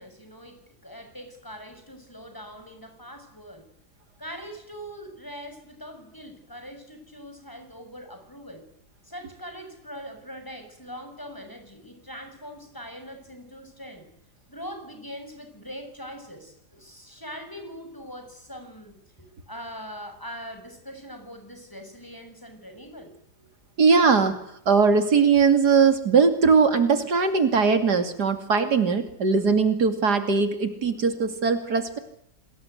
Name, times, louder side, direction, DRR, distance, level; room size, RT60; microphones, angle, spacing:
voice 1, 0.0-3.6 4.2-8.6 9.0-14.1 14.5-23.5, equal, 10° left, 6 dB, 6.9 m, -42 dB
voice 2, 23.8-24.4 24.7-32.0, right 5 dB, 90° right, 9 dB, 3.3 m, -20 dB
27.5 x 20.5 x 9.5 m, 0.73 s
omnidirectional pair, 1.7 m